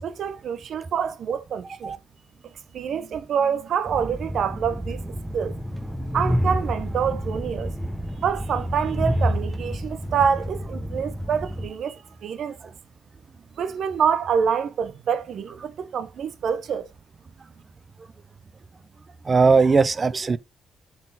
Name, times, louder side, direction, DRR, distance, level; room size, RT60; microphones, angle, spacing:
voice 1, 0.0-2.0 2.4-5.0 5.3-5.6 6.1-7.7 8.2-12.7 13.6-16.9, right 7 dB, 65° right, 0.8 m, -26 dB
Train, 3.9-11.7, equal, 10° right, 1.1 m, -29 dB
voice 2, 19.3-20.4, right 4 dB, 30° right, 0.5 m, -18 dB
7.8 x 4.4 x 4.0 m
cardioid pair, 90°, 0 cm